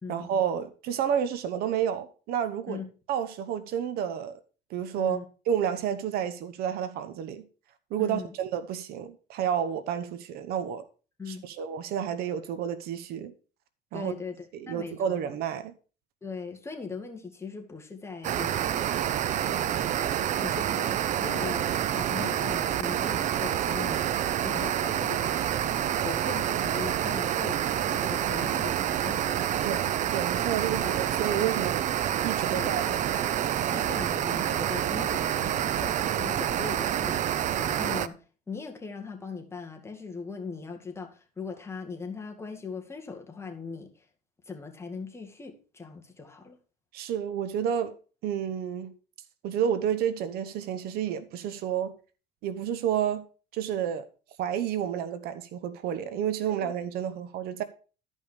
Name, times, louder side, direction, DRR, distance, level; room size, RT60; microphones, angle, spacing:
voice 1, 0.1-2.8 3.1-4.4 4.7-5.2 5.5-7.4 7.9-10.8 11.3-13.3 13.9-14.1 14.5-15.7 29.6-31.9 32.2-32.8 46.9-47.9 48.2-48.9 49.4-51.9 52.4-53.2 53.5-54.1 54.4-57.6, right 9 dB, 65° right, 1.0 m, -30 dB
voice 2, 8.0-8.3 11.2-11.5 13.9-15.2 16.2-18.9 19.4-20.0 20.4-24.1 24.4-29.6 30.7-31.0 31.3-31.6 32.5-33.3 33.6-37.2 37.6-44.1 44.5-46.6 56.5-56.7, left 4 dB, 15° left, 2.0 m, -40 dB
sound 1, 18.2-38.1, right 10 dB, 45° right, 0.6 m, -28 dB
Acoustic guitar / Strum, 22.1-27.4, left 7 dB, 65° left, 2.8 m, -53 dB
12.5 x 5.5 x 4.9 m
cardioid pair, 115°, 17 cm